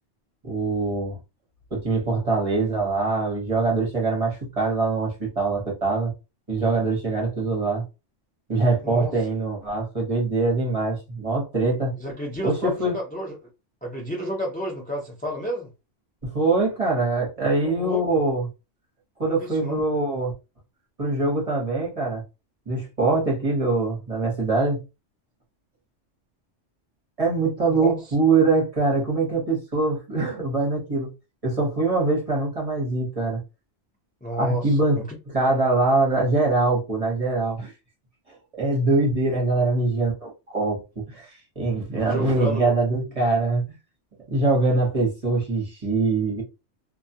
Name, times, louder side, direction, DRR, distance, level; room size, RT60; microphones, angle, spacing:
voice 1, 0.4-1.2 1.7-6.1 6.5-7.8 8.5-11.9 12.4-12.9 16.2-18.4 19.2-20.3 21.0-22.2 22.7-24.8 27.2-31.1 31.4-33.4 34.4-35.0 35.3-37.7 38.5-40.8 41.1-43.6 44.3-46.4, right 3 dB, 30° right, 0.9 m, -23 dB
voice 2, 12.0-13.5 13.8-15.7 17.6-18.0 19.2-19.8 27.8-27.9 34.2-35.2 39.3-39.4 42.1-42.7, equal, 10° left, 0.4 m, -31 dB
2.3 x 2.3 x 2.7 m
omnidirectional pair, 1.3 m